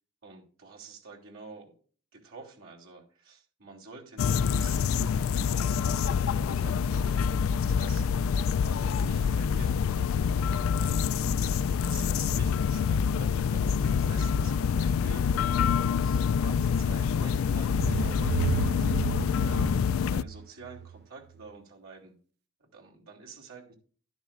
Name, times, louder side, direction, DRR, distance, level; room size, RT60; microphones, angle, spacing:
voice 1, 0.2-1.7 2.1-8.1 8.5-9.9 10.7-11.1 11.7-15.3 15.8-18.9 19.4-22.1 22.6-23.7, right 3 dB, 90° right, -2 dB, 3.1 m, -49 dB
sound 1, 4.2-20.2, left 6 dB, 85° left, 0.4 m, -26 dB
sound 2, 17.3-21.0, right 9 dB, 50° right, 0.4 m, -33 dB
11.5 x 10.0 x 2.5 m, 0.42 s
head